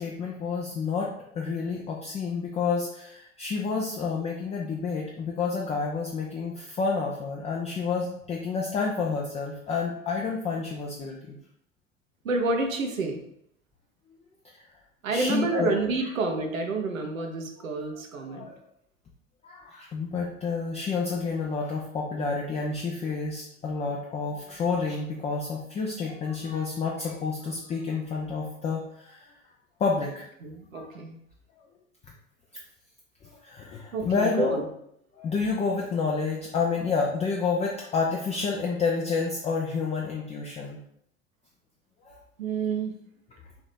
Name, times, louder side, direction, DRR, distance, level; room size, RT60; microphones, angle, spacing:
voice 1, 0.0-11.4 14.5-14.6 15.1-15.7 17.8-17.9 18.1-18.6 19.4-29.3 29.8-30.3 30.7-30.8 33.2-34.7 35.1-40.8 42.0-42.2, left 4 dB, 15° left, -1 dB, 0.4 m, -29 dB
voice 2, 12.2-13.2 15.0-18.5 30.4-31.2 33.9-34.6 42.4-42.9, right 3 dB, 80° right, 3 dB, 0.8 m, -29 dB
3.4 x 2.9 x 4.0 m, 0.73 s
figure-of-eight pair, 75°, 40 cm